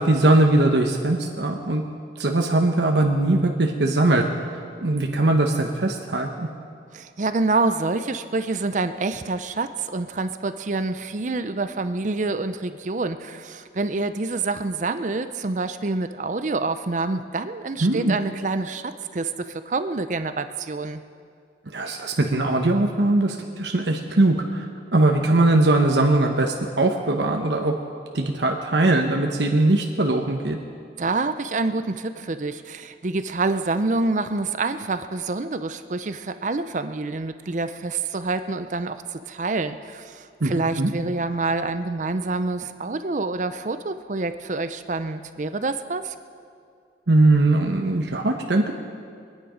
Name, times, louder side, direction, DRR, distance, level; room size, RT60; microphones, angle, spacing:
voice 1, 0.0-1.8 2.2-4.3 4.8-6.5 17.8-18.2 21.7-24.7 24.9-27.7 28.1-30.6 40.4-40.9 47.1-48.7, right 2 dB, 75° right, 2 dB, 1.0 m, -20 dB
voice 2, 6.9-21.0 31.0-46.1, right 3 dB, 45° right, 10 dB, 0.5 m, -27 dB
23.5 x 9.7 x 5.1 m, 2.3 s
head